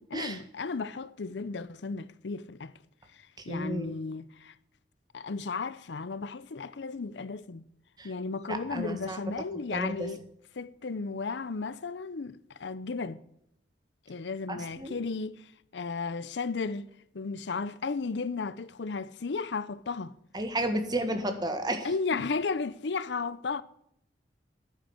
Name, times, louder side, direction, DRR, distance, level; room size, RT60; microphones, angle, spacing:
voice 1, 0.0-2.7 3.5-4.5 5.1-7.6 8.0-10.2 10.5-13.2 14.1-16.9 17.1-20.1 21.8-23.6, left 4 dB, 75° left, 0.6 m, -34 dB
voice 2, 3.5-3.9 8.0-8.1 8.5-9.2 9.7-10.1 14.5-15.0 20.3-21.9, right 1 dB, 25° right, 1.6 m, -32 dB
10.5 x 9.8 x 6.3 m
head